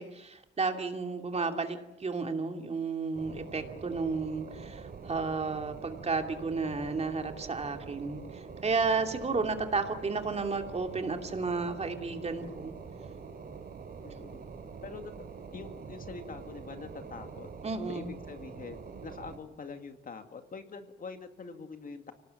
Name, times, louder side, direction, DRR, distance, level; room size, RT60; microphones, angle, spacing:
voice 1, 0.0-12.7 17.6-18.1, right 4 dB, 30° right, 5 dB, 2.7 m, -32 dB
sound 1, 3.1-19.4, right 5 dB, 50° right, 3.1 m, -45 dB
voice 2, 14.0-14.4 14.8-15.1 15.5-17.5 17.9-18.8 19.0-22.1, left 4 dB, 45° left, 7 dB, 2.2 m, -44 dB
25.0 x 18.5 x 9.0 m, 0.96 s
cardioid pair, 90°, 20 cm